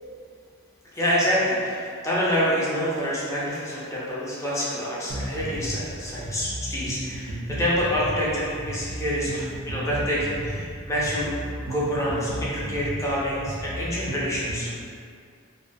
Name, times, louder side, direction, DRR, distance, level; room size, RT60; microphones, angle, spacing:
voice 1, 0.9-11.3 11.6-14.7, equal, 15° left, -8 dB, 0.4 m, -27 dB
sound 1, 5.1-14.7, right 1 dB, 45° right, 0.3 m, -34 dB
2.2 x 2.2 x 2.5 m, 2.3 s
head